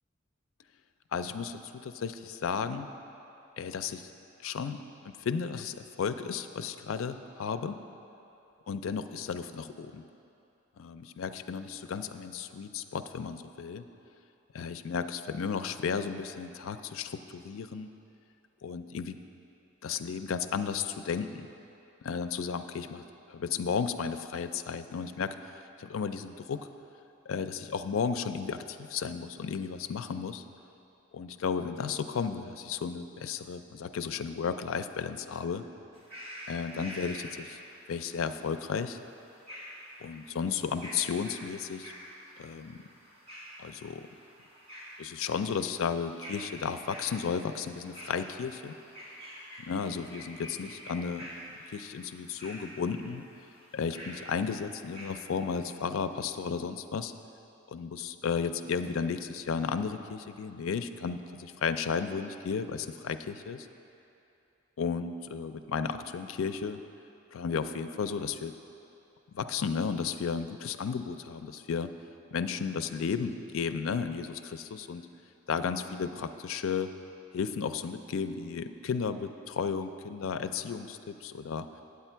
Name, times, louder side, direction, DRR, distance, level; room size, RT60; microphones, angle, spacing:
voice 1, 1.1-2.9 3.6-4.1 4.4-4.8 5.0-7.8 8.7-10.0 10.8-13.8 14.5-17.9 18.6-19.2 19.8-21.5 22.0-23.0 23.3-25.3 25.8-26.7 27.3-30.4 31.1-35.6 36.5-37.6 37.9-39.0 40.0-41.9 42.4-42.8 43.6-44.0 45.0-48.8 49.7-51.3 51.7-53.3 53.7-57.1 57.7-63.7 64.8-66.8 67.3-68.5 69.3-71.9 72.3-75.0 75.5-76.9 77.3-81.7, left 6 dB, 85° left, 10 dB, 0.4 m, -34 dB
sound 1, 35.9-55.1, equal, 50° right, 1.6 m, -48 dB
8.5 x 8.3 x 4.4 m, 2.8 s
head